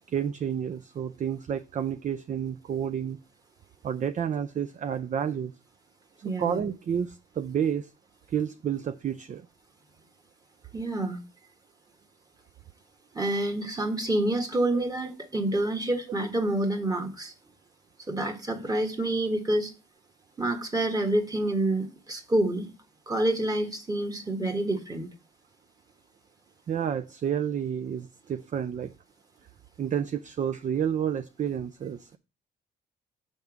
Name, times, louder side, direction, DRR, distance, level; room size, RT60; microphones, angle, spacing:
voice 1, 0.1-3.2 3.8-5.5 6.2-7.9 8.3-9.5 14.7-14.8 26.7-28.9 29.8-32.2, right 8 dB, 40° right, 0.4 m, -30 dB
voice 2, 6.2-6.6 10.7-11.2 13.1-17.3 18.1-19.7 20.4-22.7 23.1-25.1, right 1 dB, 20° right, 1.5 m, -28 dB
6.6 x 3.6 x 6.0 m
cardioid pair, 90°, 20 cm